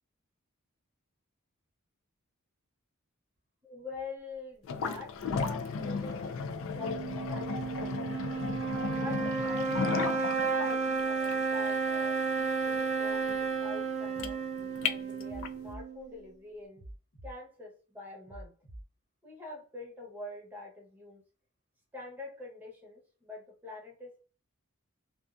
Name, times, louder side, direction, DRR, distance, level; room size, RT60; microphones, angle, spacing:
voice 1, 3.6-8.2 9.0-16.8 17.2-18.5 19.2-21.2 21.9-24.2, left 3 dB, 10° right, -2 dB, 0.9 m, -46 dB
sound 1, 4.6-15.7, left 5 dB, 65° left, 0.3 m, -35 dB
sound 2, 6.8-16.2, right 4 dB, 30° right, 0.4 m, -32 dB
sound 3, 14.1-14.3 15.2-15.8 16.7-17.3 18.2-18.8, right 1 dB, 80° left, 1.1 m, -46 dB
2.5 x 2.3 x 2.3 m, 0.36 s
head